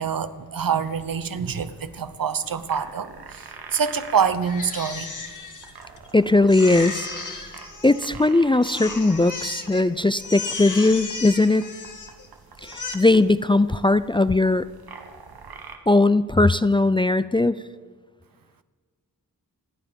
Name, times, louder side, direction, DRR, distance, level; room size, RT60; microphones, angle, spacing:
voice 1, 0.0-5.1, right 6 dB, 70° right, 12 dB, 1.0 m, -26 dB
sound 1, 0.6-15.8, right 5 dB, 90° right, 1.4 m, -45 dB
Crying sobbing, 4.4-6.1 6.5-8.3 8.6-9.8 10.2-12.3 12.6-12.9, left 4 dB, 55° left, 1.8 m, -35 dB
voice 2, 6.1-7.1 7.8-11.7 12.6-14.6 15.9-17.6, left 2 dB, 15° left, 14 dB, 0.4 m, -19 dB
26.5 x 9.5 x 5.3 m, 1.5 s
wide cardioid pair, 70°, 36 cm